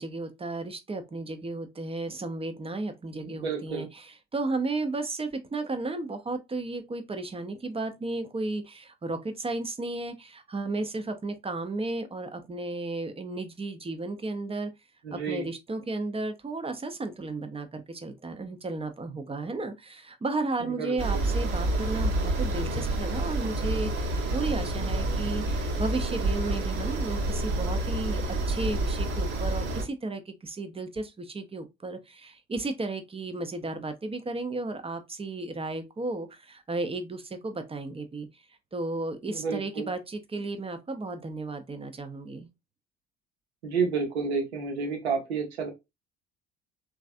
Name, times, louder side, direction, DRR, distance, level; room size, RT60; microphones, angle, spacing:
voice 1, 0.0-14.7 15.1-38.4 38.7-42.5, right 2 dB, 20° right, 0.6 m, -34 dB
voice 2, 3.2-3.9 15.0-15.4 20.6-21.2 39.3-39.9 43.6-45.7, right 5 dB, 85° right, 0.9 m, -30 dB
sound 1, 21.0-29.8, right 2 dB, 60° right, 1.0 m, -28 dB
3.1 x 2.4 x 2.5 m
hypercardioid pair, 55°, 32 cm